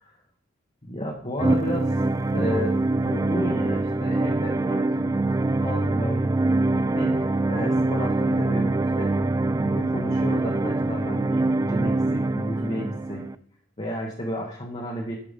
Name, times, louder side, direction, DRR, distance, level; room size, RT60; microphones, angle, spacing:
voice 1, 0.8-2.0 2.3-6.3 6.7-9.1 9.6-13.2 13.8-15.2, equal, 30° left, -2 dB, 1.4 m, -32 dB
sound 1, 1.4-13.3, right 2 dB, 20° right, 0.3 m, -24 dB
11.5 x 5.8 x 5.3 m, 0.64 s
head